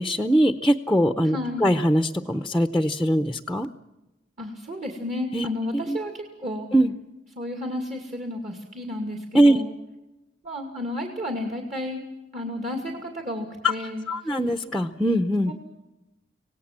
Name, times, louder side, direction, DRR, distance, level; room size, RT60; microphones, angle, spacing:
voice 1, 0.0-3.7 5.3-5.5 5.9-6.0 6.7-6.9 9.3-9.6 14.1-15.5, equal, ahead, 8 dB, 0.7 m, -21 dB
voice 2, 1.2-1.7 4.4-6.7 7.4-9.7 10.4-12.0 12.3-14.0 15.5-15.6, left 1 dB, 45° right, 2 dB, 2.5 m, -32 dB
26.0 x 18.0 x 7.5 m, 0.98 s
head